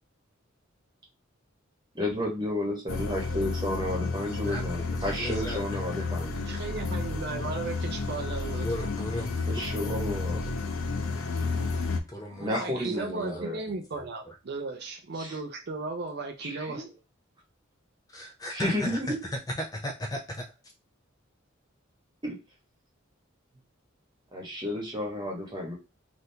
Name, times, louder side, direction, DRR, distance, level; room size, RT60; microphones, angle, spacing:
voice 1, 1.9-6.3 9.5-10.5 12.4-13.6 15.2-15.3 16.4-16.9 18.5-19.2 22.2-22.4 24.3-25.7, left 1 dB, 20° right, -1 dB, 1.1 m, -32 dB
sound 1, 2.9-12.0, left 3 dB, 90° left, 0.5 m, -31 dB
voice 2, 4.4-6.1 8.6-9.7 12.1-13.4 13.9-14.3 18.1-20.4, left 1 dB, 20° left, 2 dB, 0.4 m, -37 dB
voice 3, 6.3-8.7 12.3-16.8, right 3 dB, 50° right, 4 dB, 0.5 m, -36 dB
3.4 x 2.5 x 2.7 m, 0.27 s
head